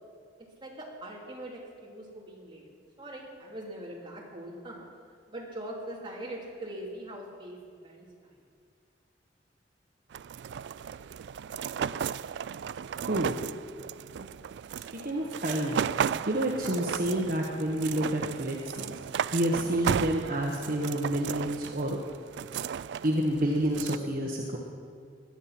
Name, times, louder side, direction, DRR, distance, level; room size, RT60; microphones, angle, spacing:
voice 1, 0.6-2.7 3.0-4.8 5.3-7.6 7.8-8.3, right 1 dB, 30° right, -3 dB, 3.3 m, -42 dB
sound 1, 10.1-24.0, right 7 dB, 70° right, 0.3 m, -34 dB
voice 2, 14.9-15.8 16.3-19.1 19.3-22.0 23.0-24.6, right 1 dB, 55° right, 0 dB, 1.3 m, -29 dB
20.0 x 11.0 x 6.0 m, 2.2 s
head